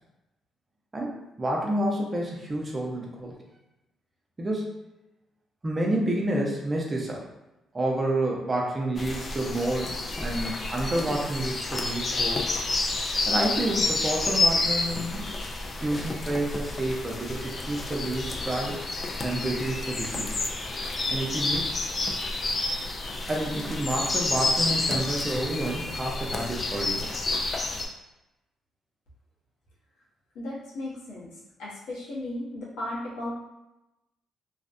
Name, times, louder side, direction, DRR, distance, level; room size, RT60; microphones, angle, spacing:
voice 1, 0.9-3.4 4.4-4.8 5.6-7.2 7.7-12.4 13.3-15.2 15.8-18.8 19.2-20.4 21.1-21.8 23.3-27.2, right 1 dB, 25° right, -2 dB, 0.6 m, -29 dB
sound 1, 9.0-27.9, left 2 dB, 35° left, 0.3 m, -29 dB
voice 2, 30.3-31.3 31.6-33.4, left 1 dB, 90° left, -6 dB, 0.8 m, -35 dB
2.5 x 2.1 x 2.5 m, 0.94 s
cardioid pair, 90°, 0 cm